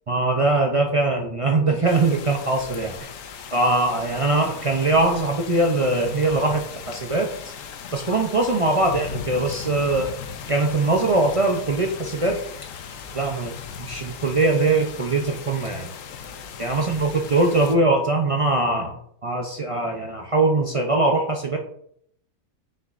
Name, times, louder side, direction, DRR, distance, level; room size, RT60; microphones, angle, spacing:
voice 1, 0.1-3.0 3.5-7.3 7.9-10.2 10.5-12.4 13.1-15.9 16.6-19.0 19.2-21.6, right 2 dB, 60° right, 2 dB, 0.3 m, -22 dB
sound 1, 1.9-17.8, left 7 dB, 65° left, 1.0 m, -38 dB
7.9 x 6.7 x 2.5 m, 0.69 s
omnidirectional pair, 1.6 m